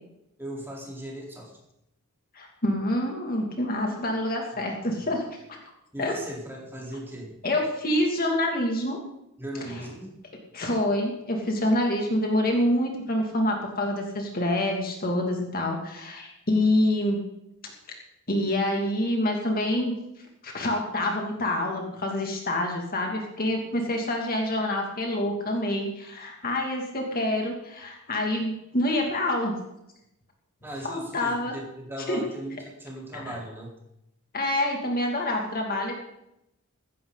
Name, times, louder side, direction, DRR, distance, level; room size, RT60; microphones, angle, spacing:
voice 1, 0.4-1.6 5.9-7.3 9.4-10.1 30.6-33.8, right 1 dB, 10° right, -3 dB, 4.1 m, -38 dB
voice 2, 2.3-5.2 5.5-5.6 6.0-6.1 7.4-9.0 9.7-9.8 10.5-17.2 18.3-19.9 20.4-29.6 30.8-31.5 32.1-32.2 33.1-33.4 34.3-35.9, left 1 dB, 45° left, 1 dB, 2.6 m, -26 dB
15.0 x 15.0 x 4.1 m, 0.84 s
head